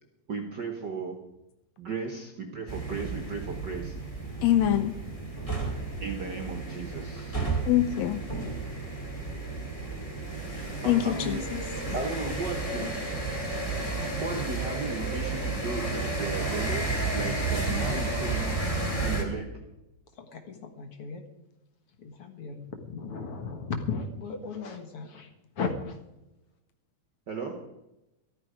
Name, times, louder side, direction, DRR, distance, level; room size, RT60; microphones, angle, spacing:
voice 1, 0.3-1.2 1.8-4.0 6.0-7.6 10.5-11.5 11.9-12.9 14.2-18.6 19.0-19.6 27.3-27.7, right 4 dB, 65° right, 4 dB, 1.0 m, -36 dB
sound 1, 2.7-19.2, right 3 dB, 10° left, 2.3 m, -32 dB
voice 2, 4.4-4.9 7.7-8.2 10.9-11.6, left 12 dB, 80° left, 10 dB, 1.6 m, -24 dB
voice 3, 20.2-21.2 22.0-25.3 25.6-26.0, left 5 dB, 55° left, 6 dB, 2.0 m, -36 dB
13.5 x 13.5 x 5.0 m, 0.94 s
omnidirectional pair, 3.7 m